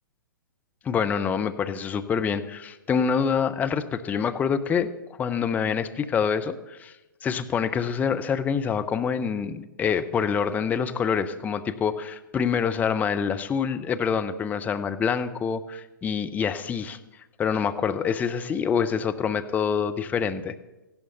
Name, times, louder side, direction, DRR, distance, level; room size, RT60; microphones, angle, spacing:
voice 1, 0.8-4.9 5.2-6.9 7.2-17.0 17.4-20.5, left 6 dB, 15° left, 9 dB, 0.8 m, -26 dB
17.5 x 15.5 x 4.0 m, 1.0 s
figure-of-eight pair, 115°, 11 cm